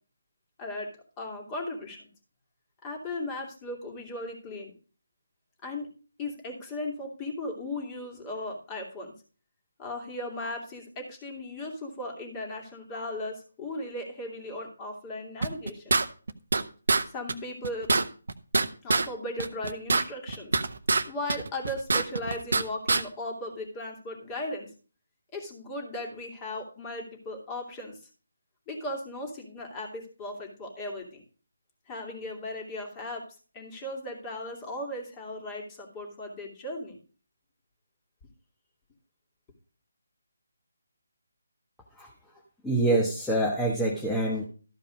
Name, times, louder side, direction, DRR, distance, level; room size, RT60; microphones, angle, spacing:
voice 1, 0.6-0.9 1.2-2.1 2.8-4.7 5.6-5.9 6.2-9.1 9.8-15.9 17.0-17.9 18.8-20.6 21.0-24.7 25.3-28.0 28.7-31.2 31.9-33.2 33.5-37.0, left 1 dB, 20° left, 2 dB, 2.7 m, -37 dB
sound 1, 15.4-16.6 16.9-17.0 17.3-17.4 17.6-19.1 19.4-21.0 21.3-22.6 22.9-23.0, right 3 dB, 60° right, 0.9 m, -24 dB
voice 2, 42.6-44.4, right 1 dB, ahead, -4 dB, 1.1 m, -26 dB
13.0 x 5.2 x 5.1 m, 0.38 s
figure-of-eight pair, 150°, 0 cm